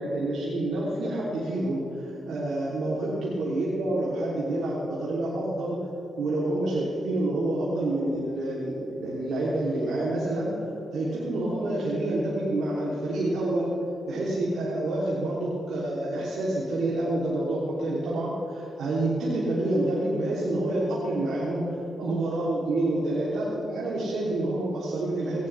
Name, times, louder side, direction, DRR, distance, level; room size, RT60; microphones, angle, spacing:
voice 1, 0.0-1.8 2.2-5.8 6.2-10.5 10.9-13.7 14.1-21.6 22.0-25.5, right 1 dB, 75° right, -8 dB, 3.0 m, -28 dB
17.5 x 17.5 x 3.4 m, 2.9 s
hypercardioid pair, 40°, 0 cm